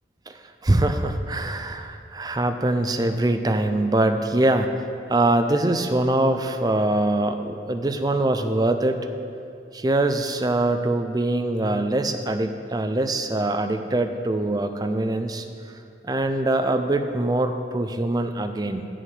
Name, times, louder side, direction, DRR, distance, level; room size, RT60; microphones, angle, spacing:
voice 1, 0.3-4.8 5.1-9.0 9.7-15.5 16.0-18.9, right 2 dB, 20° right, 7 dB, 0.4 m, -23 dB
9.8 x 4.7 x 8.0 m, 2.5 s
head